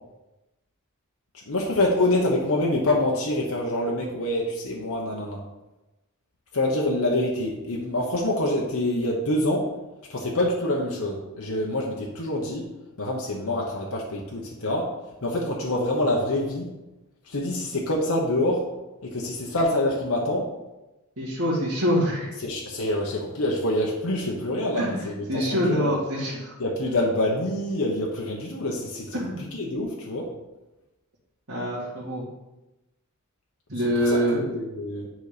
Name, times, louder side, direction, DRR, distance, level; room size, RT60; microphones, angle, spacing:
voice 1, 1.5-5.4 6.5-9.7 10.1-12.7 13.0-14.9 15.2-16.7 17.2-18.6 19.0-20.5 22.4-25.9 26.6-30.3 34.0-35.1, left 1 dB, 70° left, -1 dB, 1.1 m, -26 dB
voice 2, 21.2-22.3 24.8-26.5 29.1-29.5 31.5-32.2 33.7-34.4, equal, 65° right, -9 dB, 2.0 m, -25 dB
9.3 x 4.1 x 5.1 m, 1.0 s
head